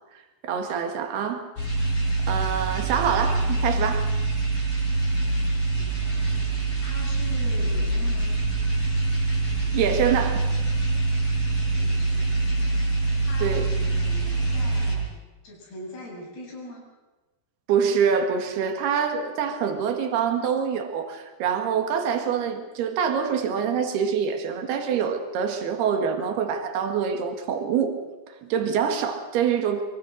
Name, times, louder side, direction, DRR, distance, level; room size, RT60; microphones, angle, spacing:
voice 1, 0.4-1.5 2.3-4.1 9.7-10.5 13.4-13.7 17.7-28.0 28.4-29.8, right 7 dB, 85° right, 5 dB, 3.9 m, -25 dB
sound 1, 1.6-14.9, right 3 dB, 35° left, 7.5 m, -24 dB
voice 2, 5.7-8.3 11.7-12.4 13.2-15.2 15.4-16.9, equal, 85° left, -3 dB, 9.7 m, -42 dB
24.5 x 23.5 x 6.6 m, 1.2 s
omnidirectional pair, 4.5 m